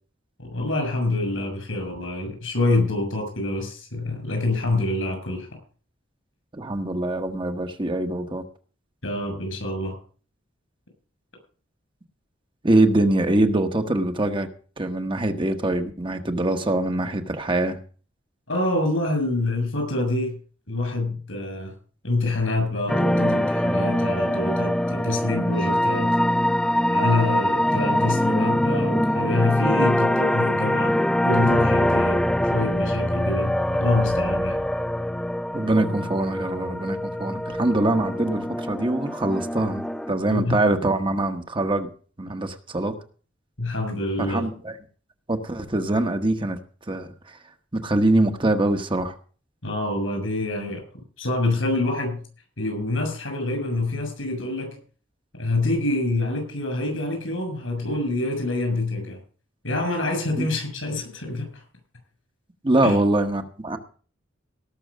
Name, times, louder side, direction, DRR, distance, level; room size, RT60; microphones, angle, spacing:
voice 1, 0.4-5.5 9.0-10.0 18.5-20.4 20.7-21.7 22.0-26.1 26.9-31.0 31.2-32.2 32.5-34.6 40.3-40.6 43.6-44.5 49.6-50.8 51.2-52.2 52.6-54.8 55.3-59.2 59.6-61.6 62.8-63.0, left 2 dB, 85° left, 5 dB, 7.0 m, -26 dB
voice 2, 6.5-8.4 12.6-14.5 14.8-17.8 35.5-41.9 42.2-42.9 44.2-44.7 45.3-46.6 46.9-47.1 47.7-49.1 60.4-60.5 62.6-63.8, right 2 dB, 25° right, 6 dB, 1.1 m, -23 dB
sound 1, 22.9-40.1, left 1 dB, 5° left, 0.5 m, -23 dB
18.5 x 6.2 x 6.3 m, 0.41 s
head